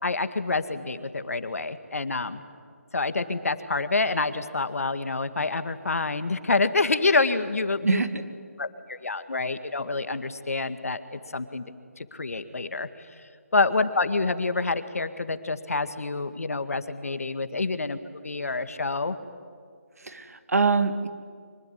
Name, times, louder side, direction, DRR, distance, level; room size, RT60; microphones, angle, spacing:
voice 1, 0.0-2.4 2.9-8.0 8.6-11.7 12.0-12.9 13.5-18.0 18.2-19.2, left 3 dB, 70° left, 11 dB, 1.8 m, -27 dB
voice 2, 20.0-21.1, right 4 dB, 75° right, 9 dB, 2.3 m, -23 dB
24.5 x 21.0 x 10.0 m, 2.1 s
hypercardioid pair, 180°, 8 cm